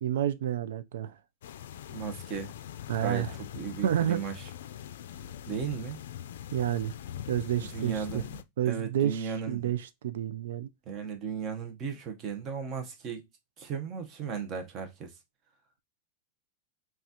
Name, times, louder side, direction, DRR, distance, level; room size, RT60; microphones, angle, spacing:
voice 1, 0.0-1.2 2.9-3.3 3.8-4.2 6.5-6.9 7.3-8.0 8.6-10.7, right 11 dB, 85° right, 0.4 m, -29 dB
sound 1, 1.4-8.4, left 10 dB, 80° left, 0.4 m, -42 dB
voice 2, 1.9-2.5 3.0-3.3 3.5-4.5 5.5-6.0 7.7-8.4 8.6-9.7 10.9-13.3 13.6-15.1, right 6 dB, 25° right, 0.8 m, -36 dB
5.8 x 2.3 x 2.8 m
supercardioid pair, 165°, 0 cm